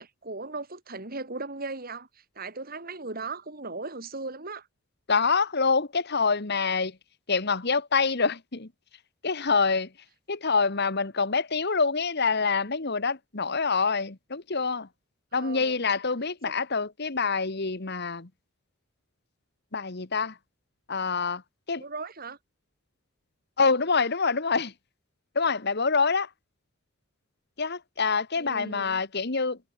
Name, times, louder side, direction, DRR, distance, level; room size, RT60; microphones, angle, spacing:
voice 1, 0.0-4.7 15.3-15.8 16.5-16.6 21.8-22.4 28.4-29.0, right 3 dB, 45° right, 3.1 m, -38 dB
voice 2, 5.1-7.0 7.3-8.7 9.2-9.9 10.3-14.9 15.3-18.3 19.7-20.4 20.9-21.4 21.7-21.8 23.6-24.7 25.3-26.3 27.6-29.6, left 4 dB, 50° left, 1.5 m, -26 dB
head